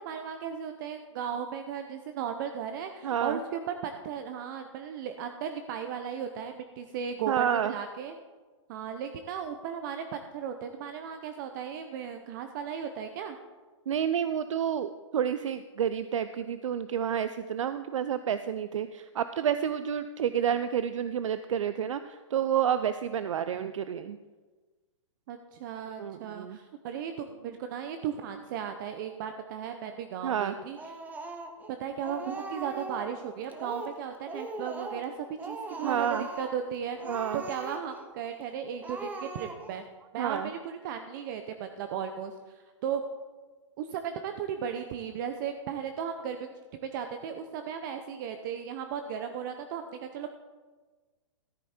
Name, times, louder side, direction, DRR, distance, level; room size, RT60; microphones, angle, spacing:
voice 1, 0.0-8.1 8.7-13.4 25.3-30.8 31.8-37.0 37.3-39.9 40.1-43.0 43.8-50.3, right 8 dB, 40° right, 7 dB, 0.7 m, -36 dB
voice 2, 3.0-3.4 7.3-7.7 13.9-24.2 26.0-26.6 30.2-30.6 35.8-36.3 37.0-37.4 40.2-40.5, right 9 dB, 80° right, 12 dB, 0.5 m, -29 dB
Speech, 30.8-31.7 32.0-33.1 33.5-34.0 34.3-35.1 35.4-36.6 37.0-38.0 38.4-38.5 38.8-39.8, right 3 dB, 10° right, 0.8 m, -40 dB
13.5 x 8.3 x 4.4 m, 1.3 s
hypercardioid pair, 145°, 16 cm